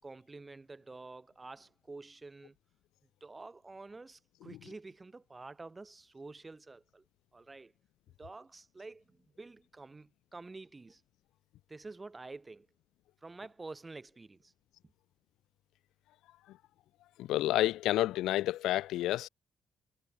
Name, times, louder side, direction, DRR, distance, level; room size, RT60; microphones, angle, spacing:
voice 1, 0.0-2.6 3.2-7.0 7.3-7.7 8.2-11.0 11.7-12.7 13.2-14.5 14.8-14.9, right 3 dB, 25° right, 5.5 m, -49 dB
voice 2, 17.2-19.3, left 15 dB, 90° left, 1.0 m, -29 dB
cardioid pair, 90°, 0 cm